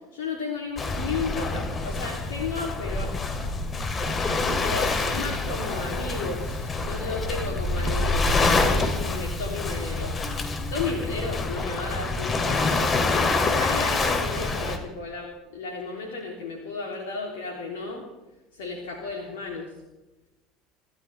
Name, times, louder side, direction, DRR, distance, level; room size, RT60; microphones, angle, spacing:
voice 1, 0.1-3.1 4.6-10.2 10.7-18.0 18.5-19.7, left 4 dB, 75° left, 0 dB, 3.1 m, -33 dB
Waves surf, 0.8-14.8, left 3 dB, 30° left, 3.1 m, -26 dB
27.0 x 14.0 x 3.5 m, 1.0 s
hypercardioid pair, 70°, 0 cm